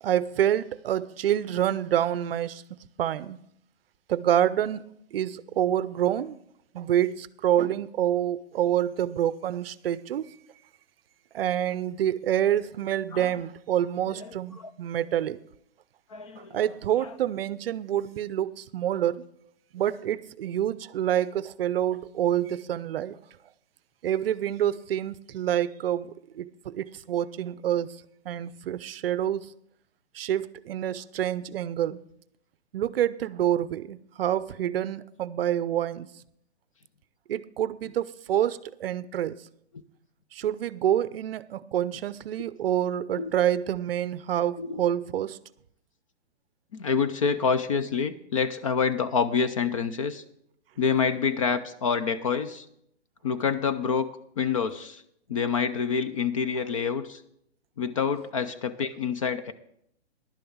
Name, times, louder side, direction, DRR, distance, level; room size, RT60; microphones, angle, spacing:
voice 1, 0.0-3.4 4.1-6.4 6.7-10.3 11.3-15.4 16.4-19.2 19.7-23.2 24.0-28.0 28.3-29.5 30.1-32.0 32.7-36.1 37.3-39.4 40.3-45.4, right 11 dB, 60° right, 0.6 m, -27 dB
voice 2, 14.2-14.7 16.1-16.6 17.0-17.1 43.2-43.3 44.6-44.8 46.7-50.2 50.8-52.7 53.2-54.1 54.4-55.0 55.3-57.2 57.8-59.5, left 6 dB, 30° left, 0.4 m, -27 dB
11.5 x 6.8 x 7.1 m
hypercardioid pair, 160°, 34 cm